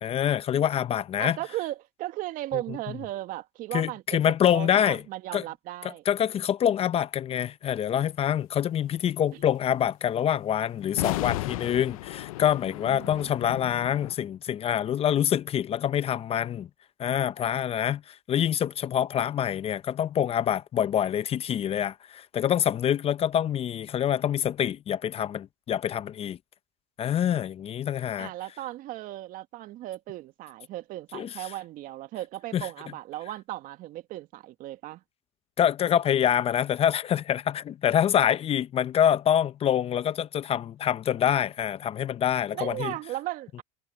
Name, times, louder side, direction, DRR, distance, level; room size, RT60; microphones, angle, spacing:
voice 1, 0.0-1.4 3.7-5.0 5.3-5.4 6.1-16.7 17.0-26.4 27.0-28.3 31.1-31.3 32.5-32.7 35.6-42.9, left 10 dB, 35° left, 0.8 m, -26 dB
voice 2, 1.2-6.0 9.3-9.4 12.8-13.3 28.2-35.0 42.5-43.6, right 15 dB, 50° right, 1.8 m, -36 dB
sound 1, 10.9-14.1, left 18 dB, 80° left, 0.7 m, -34 dB
supercardioid pair, 105°, 18 cm